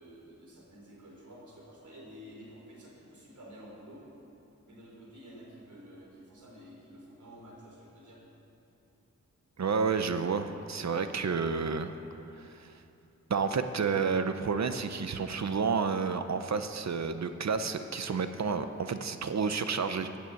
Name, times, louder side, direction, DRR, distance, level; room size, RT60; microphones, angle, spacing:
voice 1, 0.0-4.1 4.6-8.2, equal, 90° right, -2 dB, 3.9 m, -51 dB
voice 2, 9.6-11.9 12.3-12.7 13.3-20.2, right 5 dB, 65° right, 9 dB, 0.8 m, -30 dB
15.5 x 9.2 x 8.0 m, 2.8 s
wide cardioid pair, 110°, 29 cm